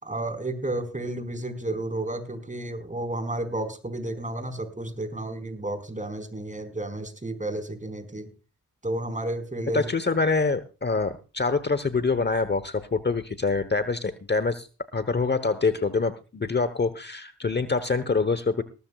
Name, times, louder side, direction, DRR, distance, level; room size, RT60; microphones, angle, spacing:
voice 1, 0.0-8.3 8.8-9.9, right 1 dB, 20° right, 8 dB, 4.8 m, -32 dB
voice 2, 9.7-14.7 14.9-18.6, left 4 dB, 30° left, 13 dB, 1.0 m, -25 dB
18.5 x 14.0 x 2.4 m, 0.33 s
cardioid pair, 55°, 35 cm